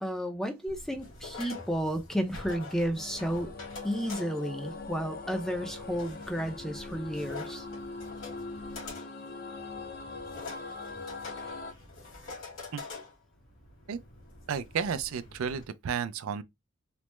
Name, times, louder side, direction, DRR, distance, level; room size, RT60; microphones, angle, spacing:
voice 1, 0.0-3.5 3.8-7.7, equal, ahead, 0.5 m, -32 dB
sound 1, 0.7-15.6, left 3 dB, 65° left, 1.5 m, -46 dB
sound 2, 2.9-11.7, left 3 dB, 45° left, 0.6 m, -42 dB
voice 2, 14.5-16.4, right 6 dB, 80° right, 0.4 m, -32 dB
3.3 x 2.0 x 3.0 m
head